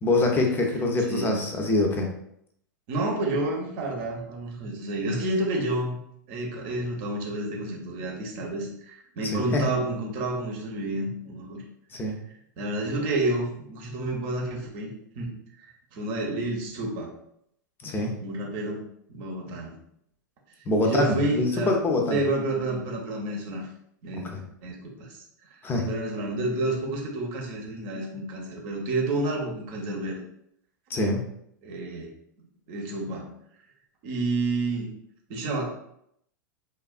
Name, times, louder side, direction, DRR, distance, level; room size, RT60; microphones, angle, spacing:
voice 1, 0.0-2.1 9.2-9.7 11.9-12.1 17.8-18.1 20.7-22.2 24.1-24.4 25.6-25.9 30.9-31.2, left 2 dB, 20° left, 2 dB, 0.6 m, -25 dB
voice 2, 2.9-6.0 6.3-11.6 12.6-15.3 15.9-17.1 18.2-19.7 20.8-21.8 22.1-23.7 24.0-24.3 24.6-25.2 25.5-30.2 31.6-32.1 32.7-33.3 34.0-34.9 35.3-35.7, right 2 dB, 45° right, 0 dB, 0.9 m, -30 dB
3.4 x 2.3 x 2.4 m, 0.72 s
figure-of-eight pair, 95°, 10 cm